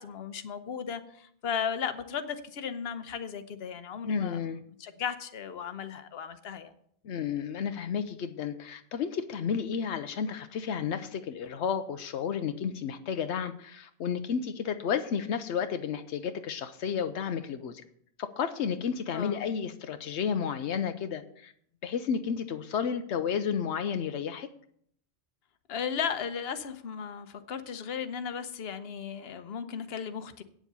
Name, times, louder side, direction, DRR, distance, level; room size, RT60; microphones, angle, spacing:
voice 1, 0.0-4.5 4.8-6.7 19.1-19.5 25.7-30.4, left 7 dB, 65° left, 10 dB, 1.1 m, -35 dB
voice 2, 4.0-4.6 7.0-17.8 18.2-21.5 21.8-24.5, left 7 dB, 90° left, 9 dB, 1.0 m, -32 dB
9.1 x 7.4 x 6.8 m, 0.65 s
omnidirectional pair, 1.1 m